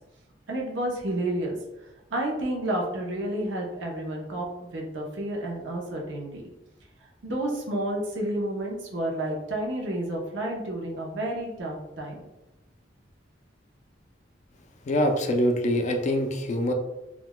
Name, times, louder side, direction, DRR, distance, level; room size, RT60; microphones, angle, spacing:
voice 1, 0.5-1.6 2.1-6.5 7.2-12.3, right 1 dB, 80° right, -1 dB, 0.7 m, -30 dB
voice 2, 14.9-16.7, equal, 40° left, 4 dB, 0.4 m, -24 dB
3.8 x 2.3 x 2.2 m, 0.96 s
head